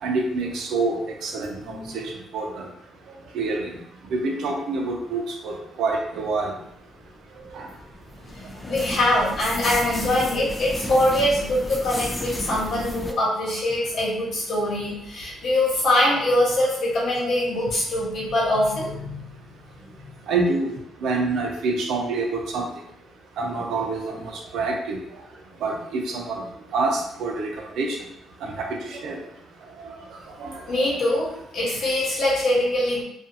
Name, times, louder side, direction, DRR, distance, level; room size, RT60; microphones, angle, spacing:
voice 1, 0.0-2.7 3.1-3.8 4.1-6.6 7.5-7.7 17.2-17.3 20.3-22.7 23.4-25.0 25.6-28.0 28.4-29.2 29.8-30.0 30.3-31.2, right 3 dB, 80° right, 1 dB, 0.5 m, -27 dB
voice 2, 1.6-2.0 8.3-19.2 30.7-33.0, left 1 dB, 70° left, -6 dB, 1.2 m, -23 dB
sound 1, 7.2-13.1, left 1 dB, 15° left, 0.3 m, -33 dB
2.4 x 2.4 x 2.6 m, 0.76 s
cardioid pair, 90°, 0 cm